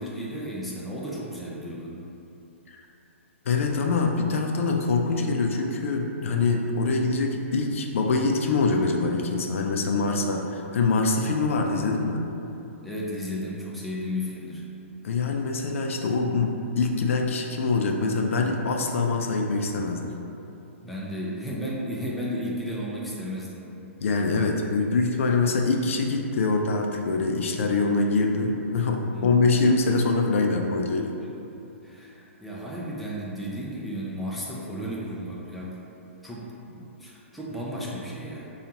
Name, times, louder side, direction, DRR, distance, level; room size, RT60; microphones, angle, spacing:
voice 1, 0.0-2.0 12.8-14.6 20.8-23.6 29.1-29.5 31.8-35.8 36.2-38.5, equal, ahead, -6 dB, 0.4 m, -34 dB
voice 2, 3.5-12.2 15.0-20.1 24.0-31.1, left 3 dB, 70° left, 2 dB, 0.4 m, -24 dB
5.0 x 2.4 x 2.8 m, 2.9 s
hypercardioid pair, 150°, 7 cm